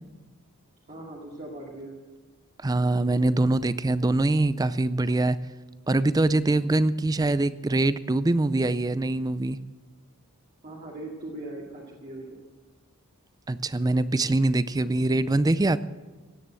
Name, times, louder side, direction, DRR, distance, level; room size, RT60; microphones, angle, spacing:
voice 1, 0.9-2.0 10.6-12.4, right 2 dB, 35° right, -3 dB, 2.3 m, -39 dB
voice 2, 2.6-5.4 5.9-9.6 13.5-15.8, right 2 dB, 15° right, 15 dB, 0.4 m, -23 dB
16.5 x 10.0 x 7.6 m, 1.3 s
head